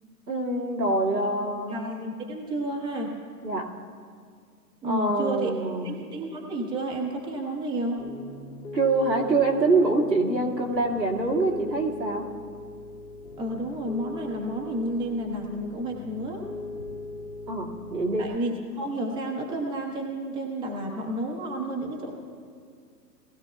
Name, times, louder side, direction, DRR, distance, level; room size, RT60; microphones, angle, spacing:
voice 1, 0.3-1.8 3.4-3.7 4.8-5.9 8.7-12.3 17.5-18.3, right 2 dB, 90° right, -1 dB, 2.2 m, -25 dB
voice 2, 0.8-1.2 1.7-3.1 4.8-5.5 5.8-8.0 13.4-16.5 18.2-22.1, right 1 dB, 10° right, 0 dB, 1.0 m, -31 dB
Piano, 8.0-18.3, left 3 dB, 65° left, 2.2 m, -40 dB
19.5 x 14.0 x 2.3 m, 2.1 s
figure-of-eight pair, 120°, 49 cm